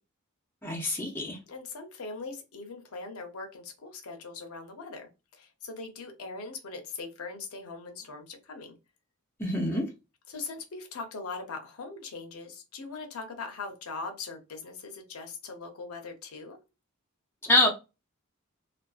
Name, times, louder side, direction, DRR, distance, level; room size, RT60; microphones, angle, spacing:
voice 1, 0.6-1.4 9.4-9.9 17.4-17.7, left 2 dB, 10° left, 0.4 m, -25 dB
voice 2, 1.5-8.8 10.3-16.6, left 4 dB, 90° left, 0.6 m, -41 dB
2.4 x 2.2 x 2.3 m
head